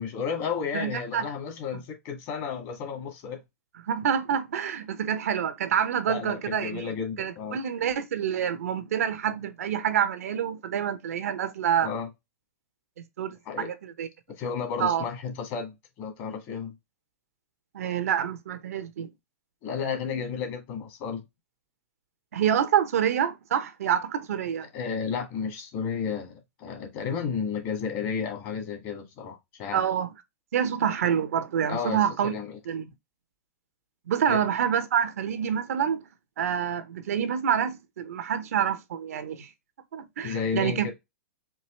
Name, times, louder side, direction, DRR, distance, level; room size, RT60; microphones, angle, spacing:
voice 1, 0.0-3.4 6.1-7.6 11.8-12.1 13.4-13.7 14.4-16.7 19.6-21.2 24.7-29.8 31.7-32.6 34.3-34.4 40.2-40.9, left 6 dB, 40° left, 1.7 m, -32 dB
voice 2, 0.7-1.2 3.8-6.9 7.2-11.9 13.2-14.1 14.8-15.1 17.7-19.1 22.3-24.7 29.7-30.1 30.5-32.3 32.7-32.9 34.1-36.1 36.4-39.5 39.9-40.9, right 8 dB, 75° right, 0.8 m, -27 dB
4.7 x 2.8 x 3.0 m
hypercardioid pair, 130°, 8 cm